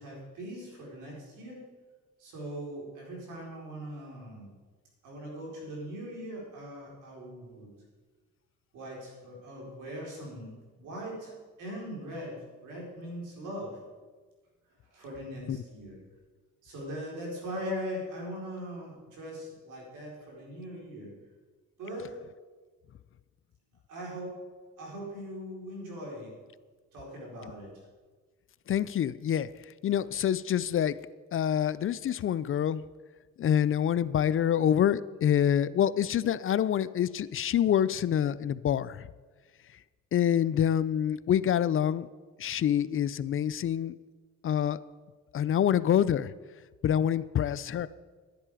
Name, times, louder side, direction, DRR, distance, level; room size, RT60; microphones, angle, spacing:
voice 1, 0.0-1.6 2.2-4.5 5.0-7.7 8.7-13.8 14.9-16.0 16.6-21.1 21.8-22.2 23.9-24.5 24.8-26.3 26.9-27.8, equal, 85° right, -2 dB, 4.4 m, -40 dB
voice 2, 28.7-31.0 31.3-32.8 33.4-39.1 40.1-42.1 42.4-43.9 44.4-44.8 45.3-46.3 46.8-47.9, left 9 dB, 45° left, 17 dB, 0.4 m, -26 dB
11.0 x 10.5 x 4.9 m, 1.4 s
cardioid pair, 90°, 30 cm